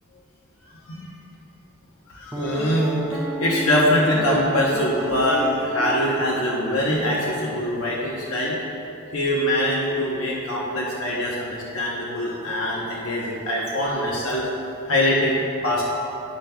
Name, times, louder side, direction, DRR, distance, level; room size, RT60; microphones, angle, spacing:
voice 1, 2.1-8.6 9.1-14.5 14.9-15.8, left 1 dB, 75° left, -4 dB, 0.9 m, -23 dB
Piano, 2.3-7.6, right 2 dB, 10° right, 0.4 m, -32 dB
10.5 x 9.1 x 2.3 m, 2.8 s
head